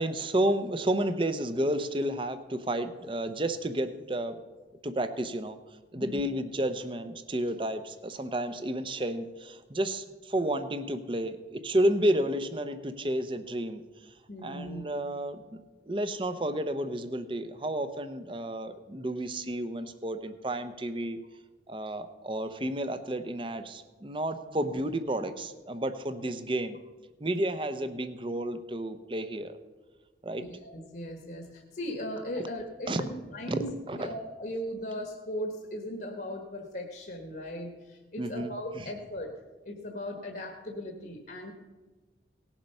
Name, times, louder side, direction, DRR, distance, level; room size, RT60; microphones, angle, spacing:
voice 1, 0.0-4.3 4.8-5.6 5.9-14.1 14.4-15.4 15.9-21.2 21.7-26.8 27.2-29.6 30.2-30.4 32.9-33.0 33.5-33.6 33.9-34.1 38.2-38.9, right 1 dB, 25° right, 10 dB, 0.7 m, -31 dB
voice 2, 14.3-14.8 24.6-24.7 30.4-39.3 39.6-41.5, equal, 50° left, 2 dB, 1.3 m, -38 dB
18.0 x 7.4 x 5.5 m, 1.2 s
head